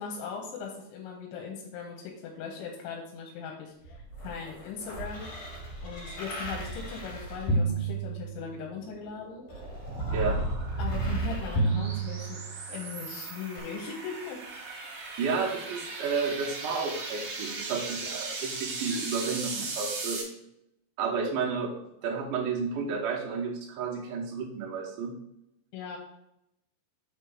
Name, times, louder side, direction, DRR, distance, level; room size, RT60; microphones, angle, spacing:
voice 1, 0.0-5.3 5.8-9.5 10.8-12.4 12.7-14.8 25.7-26.0, left 6 dB, 90° left, -1 dB, 3.4 m, -39 dB
sound 1, 3.8-8.8 9.5-12.8 13.6-13.7, right 2 dB, 65° left, 1.6 m, -32 dB
sound 2, 8.5-20.2, right 3 dB, 50° right, 2.7 m, -39 dB
voice 2, 15.2-20.2 21.0-21.7 22.0-25.2, right 5 dB, 70° right, -1 dB, 2.0 m, -31 dB
7.6 x 3.2 x 6.2 m, 0.81 s
omnidirectional pair, 5.3 m